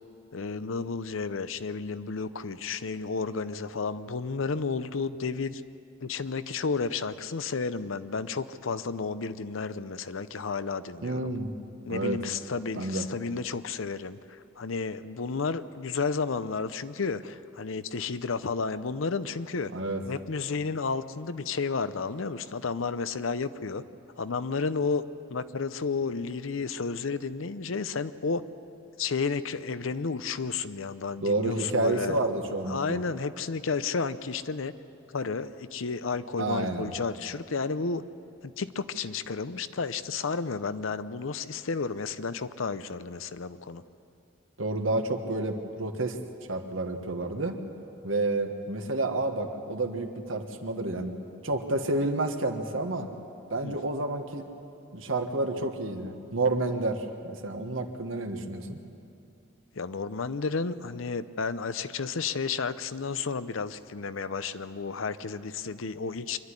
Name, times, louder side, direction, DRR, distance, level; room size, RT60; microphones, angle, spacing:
voice 1, 0.3-5.6 6.0-11.3 11.8-19.7 20.0-23.8 24.2-25.0 25.3-28.4 29.0-32.2 32.7-34.7 35.1-38.0 38.4-43.8 53.6-53.8 59.7-66.4, left 4 dB, 80° left, 13 dB, 0.7 m, -32 dB
voice 2, 11.0-11.6 11.9-12.2 12.8-13.1 19.7-20.0 31.2-33.0 36.4-36.9 44.6-46.2 46.5-47.6 48.0-51.2 51.4-53.1 53.5-54.5 54.9-58.8, right 2 dB, 75° right, 5 dB, 1.5 m, -29 dB
25.0 x 11.5 x 9.8 m, 2.7 s
head